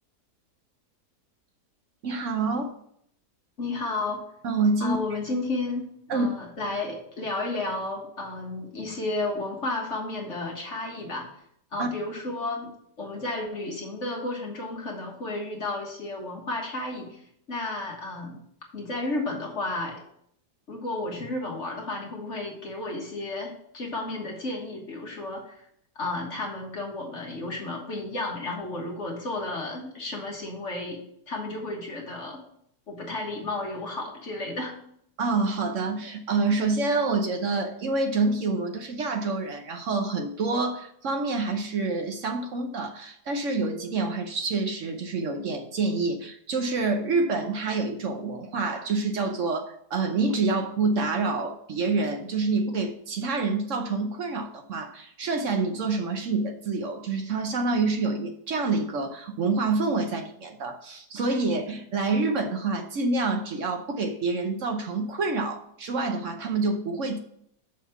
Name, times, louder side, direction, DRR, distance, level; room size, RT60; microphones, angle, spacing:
voice 1, 2.0-2.7 4.4-5.0 6.1-6.3 11.8-11.9 35.2-67.2, right 3 dB, 55° right, 5 dB, 1.0 m, -27 dB
voice 2, 3.6-4.2 4.8-11.3 11.7-17.1 17.5-18.4 18.7-20.0 20.7-25.6 25.9-31.0 31.3-32.4 32.9-34.8, left 2 dB, 45° left, 0 dB, 1.7 m, -32 dB
6.5 x 5.3 x 5.8 m, 0.69 s
omnidirectional pair, 1.8 m